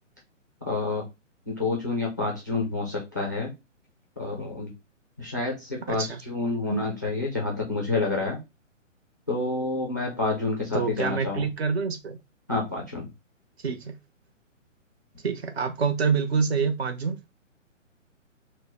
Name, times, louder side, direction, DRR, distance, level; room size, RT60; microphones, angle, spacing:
voice 1, 0.6-1.0 1.5-3.5 4.2-4.7 5.2-8.4 9.3-11.5 12.5-13.1, left 3 dB, 15° left, 0.4 m, -28 dB
voice 2, 5.9-6.2 6.7-6.8 10.7-12.2 13.6-14.0 15.2-17.2, right 5 dB, 55° right, 0.7 m, -26 dB
2.9 x 2.1 x 3.9 m
figure-of-eight pair, 130°, 39 cm